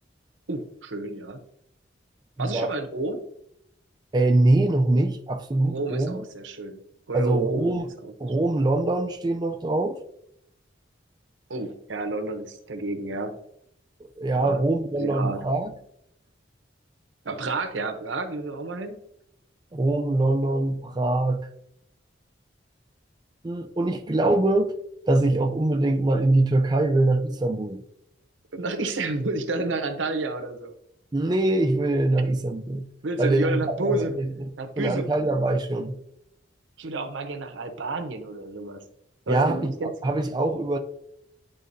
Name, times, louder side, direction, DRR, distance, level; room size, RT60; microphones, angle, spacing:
voice 1, 0.5-1.4 2.4-3.2 5.7-6.8 7.1-7.7 8.0-8.3 11.5-13.4 14.4-14.6 15.0-15.4 17.2-19.0 28.5-30.7 33.0-34.2 34.6-35.1 36.8-38.8 39.3-39.9, right 2 dB, 85° right, 0.8 m, -30 dB
voice 2, 2.4-2.7 4.1-6.2 7.1-7.9 8.2-10.0 14.2-15.7 19.7-21.5 23.4-24.7 25.1-27.8 31.1-32.9 33.2-34.3 34.8-36.0 39.3-39.7 40.0-40.8, right 2 dB, 25° right, 0.4 m, -23 dB
10.0 x 3.8 x 2.7 m
head